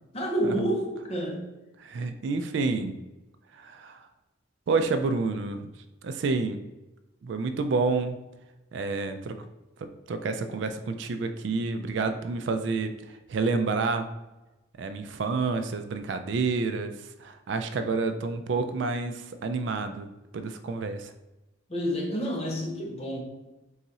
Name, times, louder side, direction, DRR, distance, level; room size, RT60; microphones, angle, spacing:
voice 1, 0.1-1.5 21.7-23.2, right 1 dB, 30° left, 0 dB, 0.7 m, -29 dB
voice 2, 1.8-2.9 3.5-4.0 4.7-5.7 6.0-6.6 7.2-8.2 8.7-9.4 9.8-14.1 14.8-16.9 17.2-20.1 20.3-21.1, right 4 dB, 65° right, 9 dB, 0.3 m, -29 dB
3.9 x 2.4 x 4.1 m, 1.0 s
head